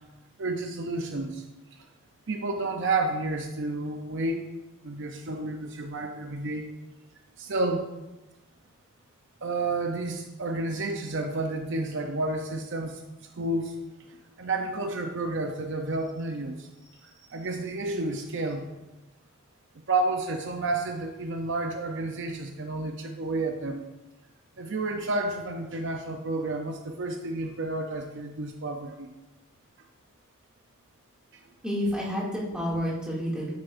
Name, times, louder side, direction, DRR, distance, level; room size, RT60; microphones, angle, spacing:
voice 1, 0.4-1.4 1.7-1.8 2.3-4.4 4.8-6.7 7.4-7.9 9.4-13.0 13.4-13.8 14.1-16.7 17.0-18.7 19.9-23.8 24.6-29.1 31.3-31.5, right 2 dB, 55° right, 4 dB, 0.7 m, -31 dB
voice 2, 31.6-33.5, equal, 5° right, -6 dB, 2.4 m, -29 dB
11.5 x 8.5 x 2.6 m, 1.0 s
head